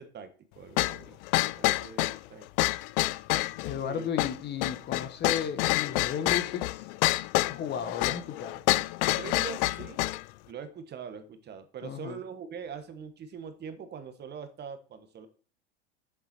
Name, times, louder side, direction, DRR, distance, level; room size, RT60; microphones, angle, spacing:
voice 1, 0.0-2.5 3.8-4.1 9.1-10.2 10.5-15.3, right 6 dB, 30° right, 1.3 m, -43 dB
sound 1, 0.8-10.2, left 19 dB, 55° left, 0.5 m, -28 dB
voice 2, 3.6-6.9 7.5-8.6 11.8-12.2, left 7 dB, 30° left, 1.0 m, -34 dB
7.4 x 7.1 x 4.3 m
hypercardioid pair, 100°, 34 cm